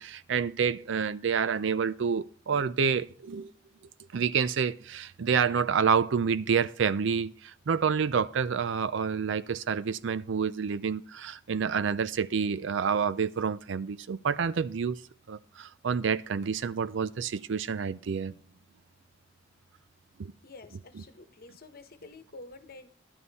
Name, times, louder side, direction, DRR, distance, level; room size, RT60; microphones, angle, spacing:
voice 1, 0.0-3.5 4.1-15.0 15.3-18.3 20.2-20.3 21.0-21.1, right 6 dB, 70° right, 0.5 m, -28 dB
voice 2, 20.4-22.9, left 3 dB, 50° left, 1.1 m, -49 dB
11.0 x 8.7 x 4.1 m
head